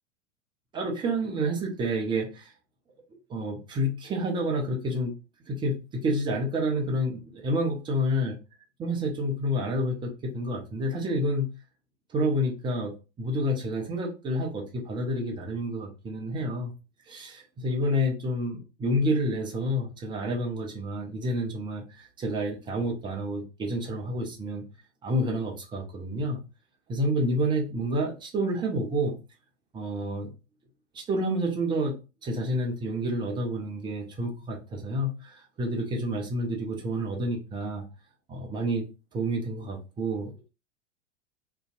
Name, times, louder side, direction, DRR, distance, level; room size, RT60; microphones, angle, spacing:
voice 1, 0.7-2.5 3.3-5.1 5.5-8.4 8.8-11.5 12.1-16.7 17.1-24.6 25.0-26.4 26.9-29.2 29.7-30.3 30.9-31.9 32.2-37.9 38.3-38.9 39.1-40.5, equal, 15° right, 1 dB, 0.5 m, -29 dB
2.5 x 2.2 x 2.4 m, 0.30 s
figure-of-eight pair, 95°, 37 cm